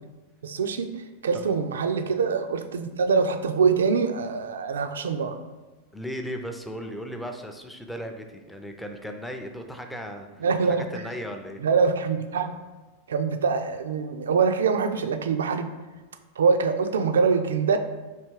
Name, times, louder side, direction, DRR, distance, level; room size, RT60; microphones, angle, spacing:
voice 1, 0.4-5.4 10.4-10.8 11.6-12.5 13.1-15.7 16.4-17.8, right 5 dB, 65° right, 7 dB, 0.3 m, -24 dB
voice 2, 5.9-10.4 10.9-11.6, equal, 5° left, 4 dB, 0.4 m, -36 dB
3.3 x 2.8 x 4.5 m, 1.2 s
figure-of-eight pair, 90°, 0 cm